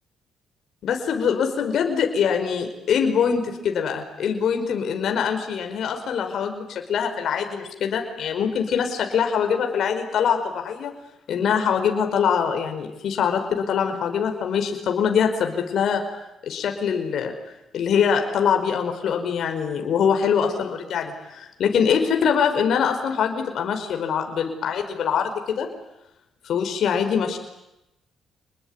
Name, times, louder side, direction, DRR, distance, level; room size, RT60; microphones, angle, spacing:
voice 1, 0.8-10.9 11.3-16.0 16.4-17.3 17.7-25.7 26.4-27.4, left 7 dB, 70° left, 5 dB, 5.0 m, -23 dB
28.0 x 21.0 x 9.8 m, 0.89 s
cardioid pair, 90°, 0 cm